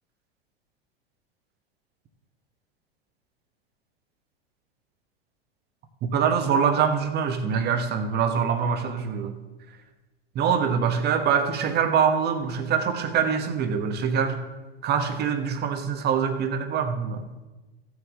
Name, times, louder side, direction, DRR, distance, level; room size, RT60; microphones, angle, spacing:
voice 1, 6.0-9.4 10.3-14.4 14.8-17.2, right 7 dB, 30° right, 7 dB, 1.2 m, -24 dB
15.0 x 6.4 x 3.7 m, 1.1 s
figure-of-eight pair, 90°, 31 cm